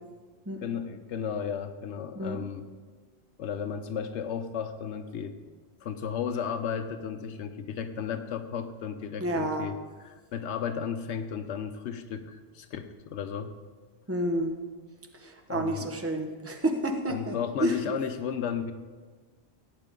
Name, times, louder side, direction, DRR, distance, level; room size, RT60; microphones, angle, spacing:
voice 1, 0.6-2.7 3.4-5.4 5.8-9.8 10.0-13.5 15.5-15.9 17.1-18.7, left 7 dB, 85° left, 8 dB, 1.0 m, -34 dB
voice 2, 9.2-9.7 14.1-14.5 15.1-17.8, right 1 dB, 15° right, 4 dB, 1.0 m, -30 dB
17.0 x 9.0 x 3.7 m, 1.4 s
omnidirectional pair, 1.2 m